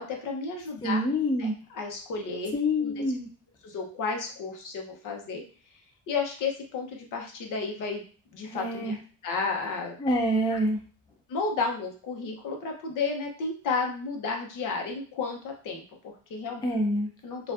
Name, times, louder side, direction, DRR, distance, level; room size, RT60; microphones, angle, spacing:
voice 1, 0.0-1.0 1.4-3.0 3.6-5.4 6.1-8.0 8.3-9.0 9.2-10.0 10.5-10.6 11.3-16.6 17.2-17.5, left 4 dB, 60° left, 2 dB, 1.0 m, -32 dB
voice 2, 0.8-1.5 2.5-3.3 8.4-9.0 10.0-10.8 16.6-17.1, equal, 15° left, 2 dB, 0.4 m, -26 dB
4.3 x 2.5 x 2.6 m, 0.39 s
cardioid pair, 160°, 35 cm